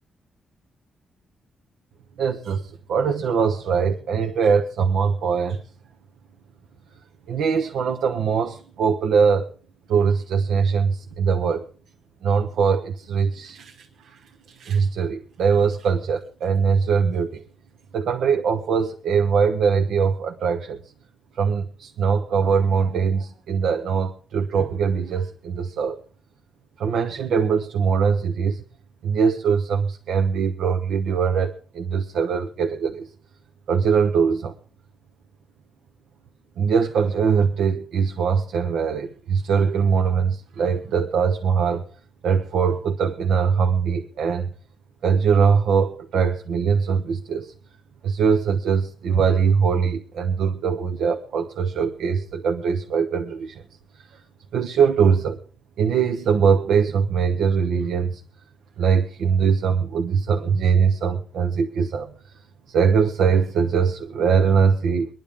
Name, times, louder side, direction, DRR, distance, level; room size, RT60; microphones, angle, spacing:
voice 1, 2.2-5.6 7.3-9.5 9.9-11.6 12.2-14.2 14.5-17.4 17.9-20.8 21.3-26.0 26.8-28.6 29.0-33.1 33.7-34.5 36.6-41.8 42.2-44.5 45.0-47.5 48.0-53.6 54.5-55.4 55.8-58.2 58.8-62.1 62.7-65.1, right 6 dB, 80° right, 5 dB, 1.0 m, -22 dB
23.5 x 10.5 x 3.6 m, 0.40 s
wide cardioid pair, 165°, 0 cm